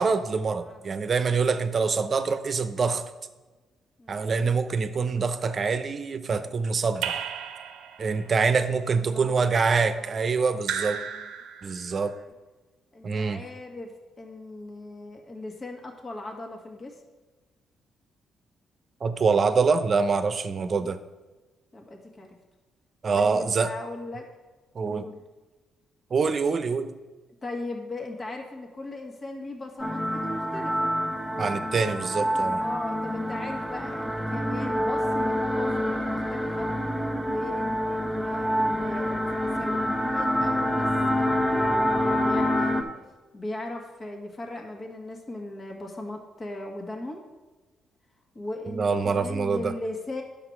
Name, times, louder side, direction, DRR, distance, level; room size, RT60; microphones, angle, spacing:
voice 1, 0.0-3.0 4.1-7.2 8.0-11.0 11.6-12.1 13.0-13.4 19.0-21.0 23.0-23.7 24.7-25.1 26.1-27.0 31.4-32.6 48.7-49.7, right 5 dB, 45° right, 10 dB, 0.7 m, -25 dB
voice 2, 0.6-0.9 4.0-4.4 8.3-9.4 9.8-10.2 10.8-11.3 12.1-12.3 12.9-17.0 20.7-20.9 21.7-22.4 23.1-24.3 24.9-25.2 27.4-30.9 32.5-36.7 37.2-40.9 41.2-42.9 43.3-47.2 48.3-50.2, left 2 dB, 35° left, 2 dB, 1.7 m, -38 dB
Raindrop / Drip, 7.0-8.2 10.6-12.0, right 8 dB, 80° right, 0.7 m, -33 dB
sound 1, 29.8-42.8, equal, 10° left, 1.4 m, -27 dB
9.7 x 6.9 x 4.7 m, 1.2 s
supercardioid pair, 70°, 0 cm